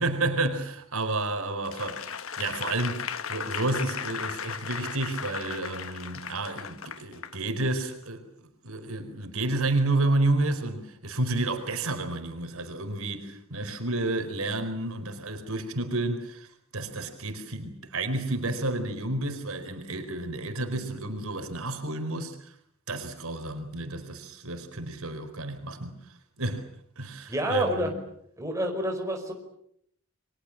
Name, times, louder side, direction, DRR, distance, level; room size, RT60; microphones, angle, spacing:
voice 1, 0.0-22.5 22.9-26.0 26.4-26.6 27.0-27.9, right 2 dB, 75° right, 4.5 m, -30 dB
Applause / Crowd, 1.6-7.4 7.9-8.0, left 7 dB, 70° left, 1.4 m, -36 dB
voice 2, 27.3-27.9 28.4-29.3, equal, 15° right, 5.1 m, -28 dB
29.5 x 24.0 x 7.5 m
head